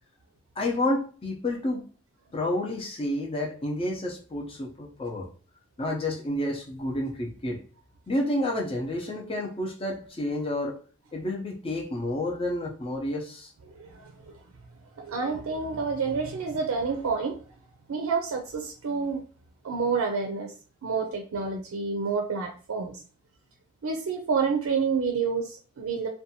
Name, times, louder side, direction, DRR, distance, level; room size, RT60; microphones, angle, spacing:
voice 1, 0.6-1.8 2.3-5.3 5.8-7.6 8.1-10.8 11.1-13.5, left 1 dB, 25° left, 0 dB, 0.5 m, -30 dB
voice 2, 13.7-14.3 15.0-17.4 17.9-19.2 19.6-20.5 20.8-22.9 23.8-26.1, right 5 dB, 80° right, 2 dB, 0.4 m, -28 dB
2.6 x 2.2 x 2.7 m, 0.40 s
head